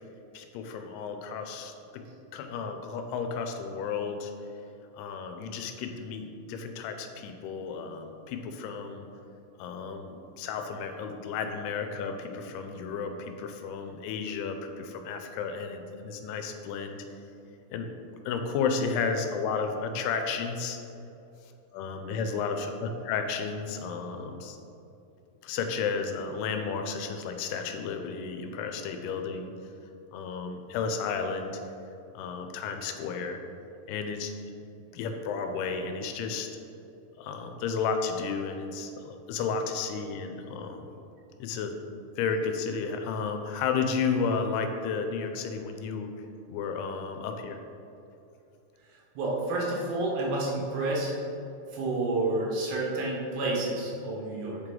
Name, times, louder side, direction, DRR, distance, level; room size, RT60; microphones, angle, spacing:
voice 1, 0.3-2.0 2.3-4.3 4.9-9.1 9.6-17.0 17.7-17.9 18.3-20.8 21.7-24.6 25.4-29.5 30.1-31.6 32.2-33.4 33.9-34.3 34.9-36.5 37.2-40.9 41.4-41.7 42.2-46.1 46.5-47.6, left 5 dB, 85° left, 6 dB, 2.6 m, -32 dB
voice 2, 49.2-51.1 51.7-54.6, right 2 dB, 70° right, -3 dB, 2.8 m, -29 dB
8.1 x 4.9 x 3.7 m, 2.8 s
omnidirectional pair, 4.6 m